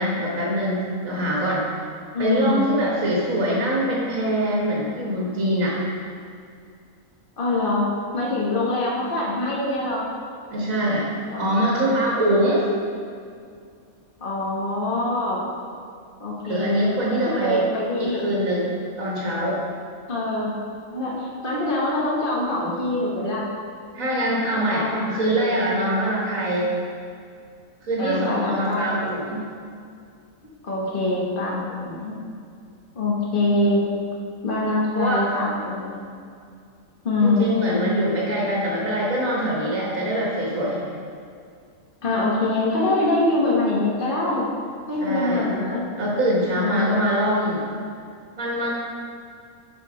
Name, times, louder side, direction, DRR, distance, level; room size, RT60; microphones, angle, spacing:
voice 1, 0.0-1.6 2.2-5.8 10.5-11.1 11.4-12.7 16.5-17.7 18.0-18.7 19.0-19.6 23.9-24.8 25.1-26.7 27.8-29.5 34.9-35.2 37.2-40.8 45.0-45.5 46.0-47.6 48.4-48.7, right 1 dB, 75° right, -4 dB, 1.8 m, -23 dB
voice 2, 2.1-2.8 3.1-3.3 7.4-10.1 11.3-11.5 14.2-15.4 16.2-18.3 20.1-20.6 20.9-23.4 24.7-25.5 28.0-29.0 30.6-32.2 32.9-33.8 34.4-36.0 37.0-37.6 42.0-44.4 44.9-45.8 46.5-47.3, left 2 dB, 40° left, -4 dB, 1.6 m, -24 dB
11.0 x 4.9 x 5.1 m, 2.3 s
omnidirectional pair, 1.4 m